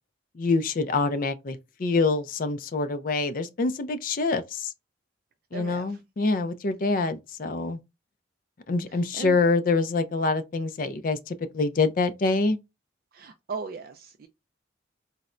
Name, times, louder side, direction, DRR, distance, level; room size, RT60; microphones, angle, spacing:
voice 1, 0.4-4.7 5.5-7.8 8.7-12.6, left 3 dB, 45° left, 0.4 m, -26 dB
voice 2, 5.5-6.0 8.9-9.4 13.1-14.3, right 4 dB, 50° right, 0.3 m, -38 dB
4.0 x 2.1 x 2.4 m
head